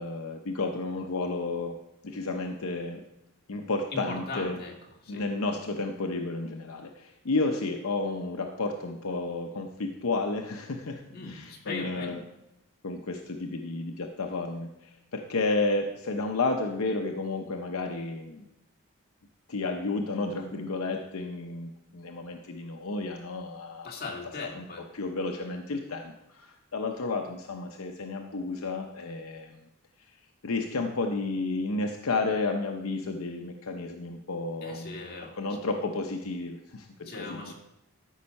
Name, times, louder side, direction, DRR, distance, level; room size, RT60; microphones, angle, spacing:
voice 1, 0.0-1.8 2.0-3.0 3.5-4.6 5.1-12.2 12.8-18.4 19.5-23.9 24.5-24.7 24.9-29.6 30.4-35.0 35.4-37.5, left 3 dB, 75° left, 4 dB, 0.7 m, -32 dB
voice 2, 3.9-4.7 5.0-5.2 11.1-12.2 23.8-24.9 34.6-35.4 37.0-37.5, left 3 dB, 45° left, -1 dB, 2.1 m, -38 dB
13.0 x 5.5 x 5.3 m, 0.92 s
head